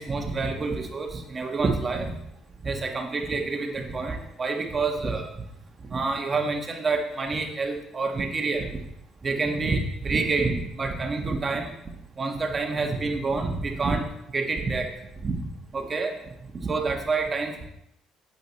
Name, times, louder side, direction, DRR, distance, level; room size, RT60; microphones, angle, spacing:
voice 1, 0.0-2.1 2.6-5.2 5.9-8.7 9.2-11.7 12.2-14.0 14.3-14.9 15.2-15.3 15.7-16.1 16.6-17.7, right 3 dB, 30° right, 3 dB, 1.5 m, -27 dB
9.0 x 8.1 x 3.2 m, 0.81 s
cardioid pair, 95°, 0 cm